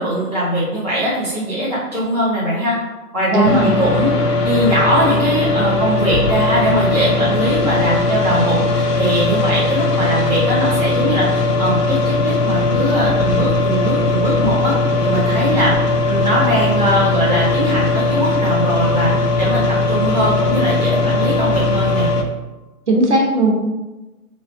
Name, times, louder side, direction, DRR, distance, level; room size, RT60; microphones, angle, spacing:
voice 1, 0.0-2.8 3.1-4.1 4.4-14.7 15.0-15.7 16.0-22.1, right 1 dB, 25° left, -8 dB, 0.5 m, -20 dB
voice 2, 3.3-3.7 22.9-23.5, right 2 dB, 50° right, 0 dB, 0.9 m, -15 dB
sound 1, 3.4-22.2, left 3 dB, 90° left, 0.8 m, -18 dB
3.2 x 2.6 x 4.4 m, 1.1 s
figure-of-eight pair, 155°, 47 cm